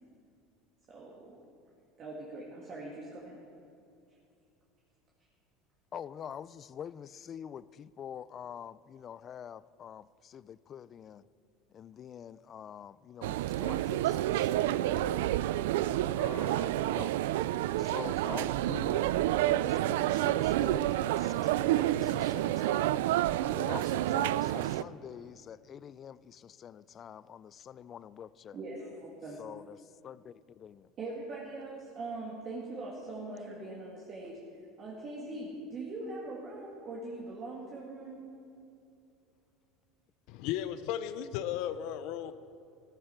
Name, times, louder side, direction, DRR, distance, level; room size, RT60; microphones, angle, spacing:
voice 1, 0.9-1.4 2.0-3.4 28.5-29.4 31.0-34.4 34.8-38.3, right 2 dB, 35° right, -4 dB, 2.2 m, -41 dB
voice 2, 5.9-11.3 11.7-15.3 16.2-17.1 17.8-23.0 23.5-28.6 29.4-30.9, left 8 dB, 35° left, 19 dB, 0.3 m, -46 dB
sound 1, 13.2-24.8, right 14 dB, 90° right, 0.3 m, -29 dB
voice 3, 40.3-42.3, left 11 dB, 65° left, 12 dB, 0.7 m, -35 dB
15.0 x 14.5 x 4.6 m, 2.6 s
supercardioid pair, 135°, 0 cm